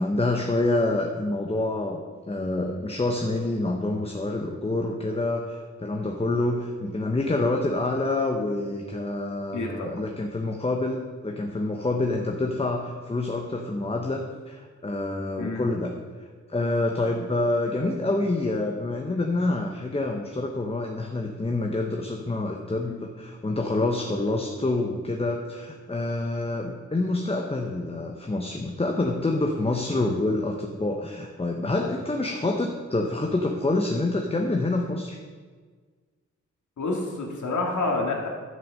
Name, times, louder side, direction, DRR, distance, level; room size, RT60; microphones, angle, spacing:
voice 1, 0.0-2.0 2.3-15.9 16.5-35.2, left 2 dB, 20° left, 2 dB, 0.9 m, -27 dB
voice 2, 9.5-10.0 15.4-15.7 22.8-23.0 36.8-38.3, left 3 dB, 85° left, 0 dB, 2.0 m, -28 dB
11.0 x 6.0 x 6.6 m, 1.5 s
wide cardioid pair, 100°, 29 cm